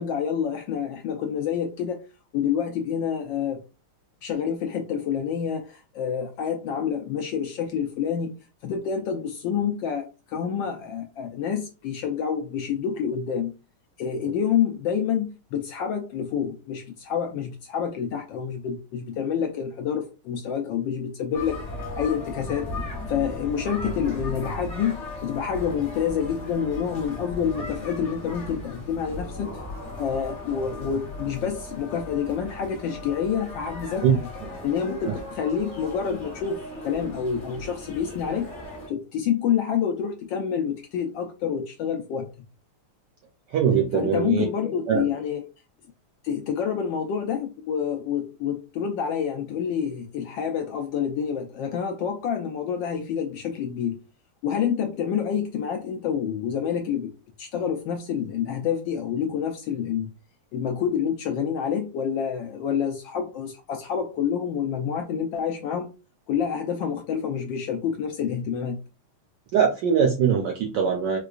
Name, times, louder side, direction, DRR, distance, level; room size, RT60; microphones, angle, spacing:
voice 1, 0.0-2.0 2.3-3.6 4.2-8.3 8.6-13.5 14.0-21.6 22.0-22.7 23.1-29.5 30.0-34.1 34.6-38.5 38.9-42.3 43.9-45.4 46.2-54.0 54.4-57.1 57.4-60.1 60.5-65.9 66.3-68.8, left 7 dB, 75° left, 4 dB, 1.1 m, -28 dB
sound 1, 21.3-38.9, left 1 dB, 40° left, 1.2 m, -37 dB
voice 2, 43.5-44.5 44.9-45.1 69.5-71.2, right 7 dB, 75° right, 2 dB, 1.0 m, -22 dB
4.6 x 2.3 x 2.4 m, 0.31 s
omnidirectional pair, 2.4 m